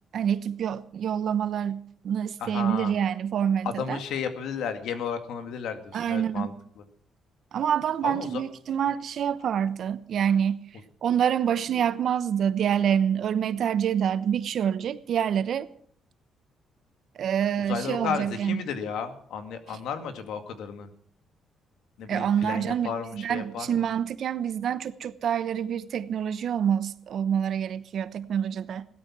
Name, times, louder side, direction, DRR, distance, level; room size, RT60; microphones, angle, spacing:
voice 1, 0.1-4.0 5.9-6.5 7.5-10.7 11.0-15.7 17.1-18.6 19.7-19.8 22.1-28.9, right 8 dB, 65° right, 1.0 m, -27 dB
voice 2, 2.4-2.9 3.6-6.5 8.0-8.4 17.7-20.9 22.0-23.9, left 7 dB, 80° left, 2.1 m, -33 dB
17.0 x 12.5 x 6.1 m
cardioid pair, 90°, 0 cm